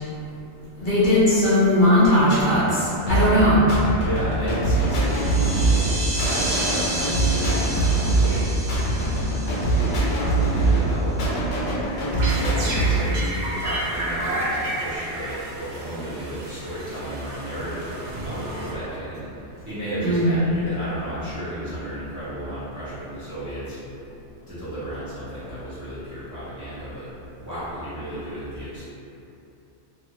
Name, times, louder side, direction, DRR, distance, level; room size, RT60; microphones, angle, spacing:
voice 1, 0.8-3.6 20.0-20.4, left 1 dB, 50° left, -12 dB, 0.9 m, -18 dB
sound 1, 3.1-13.1, right 2 dB, 75° left, 1.0 m, -23 dB
voice 2, 4.0-8.5 9.7-11.4 12.3-18.0 18.2-23.8 24.5-27.1 27.4-28.8, right 1 dB, 20° right, -14 dB, 0.7 m, -33 dB
sound 2, 4.8-10.9, right 1 dB, 45° right, 0.9 m, -32 dB
sound 3, 11.9-19.2, right 1 dB, 80° right, 0.9 m, -31 dB
2.7 x 2.4 x 2.8 m, 2.8 s
omnidirectional pair, 1.2 m